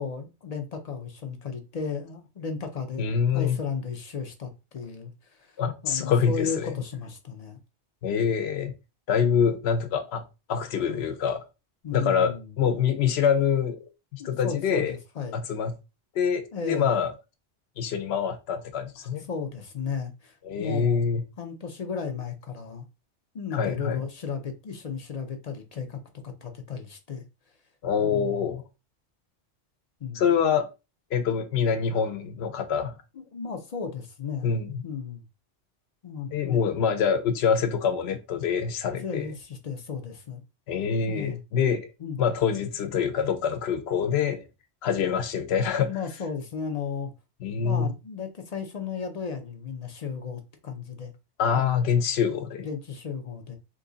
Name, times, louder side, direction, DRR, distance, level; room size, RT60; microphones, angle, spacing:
voice 1, 0.0-7.6 11.8-12.5 14.2-15.4 16.5-16.9 19.3-21.0 21.4-22.8 23.3-27.2 28.0-28.5 30.0-30.3 33.2-34.5 34.8-35.2 36.0-36.6 39.0-40.4 41.1-41.4 42.0-42.2 45.8-47.1 47.6-51.1 51.5-51.8 52.6-53.6, left 6 dB, 50° left, 0.5 m, -34 dB
voice 2, 3.0-3.6 5.6-6.7 8.0-8.7 9.1-10.2 10.5-11.4 11.9-13.8 14.1-14.9 15.3-15.7 16.1-17.1 17.8-19.3 20.4-21.2 23.5-24.0 27.8-28.6 30.1-30.7 31.1-33.0 34.4-34.8 36.3-39.3 40.7-41.9 42.2-44.5 44.8-45.9 47.4-47.9 51.4-52.7, left 7 dB, 70° left, 0.9 m, -25 dB
3.0 x 2.5 x 3.8 m
omnidirectional pair, 1.2 m